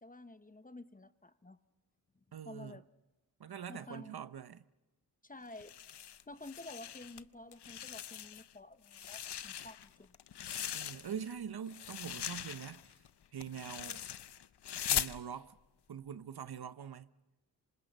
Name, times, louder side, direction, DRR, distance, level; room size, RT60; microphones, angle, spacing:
voice 1, 0.0-1.6 2.4-2.8 3.7-4.1 5.2-5.7 6.3-10.1, left 2 dB, 20° left, 0.8 m, -51 dB
voice 2, 2.3-2.8 3.4-4.6 10.7-12.8 13.3-14.0 14.9-15.6 15.9-17.1, right 8 dB, 70° right, 0.9 m, -44 dB
sound 1, 5.5-7.2 7.5-8.5 8.8-11.3 11.7-15.2, left 10 dB, 90° left, 0.7 m, -40 dB
27.0 x 26.0 x 5.4 m
wide cardioid pair, 85°, 39 cm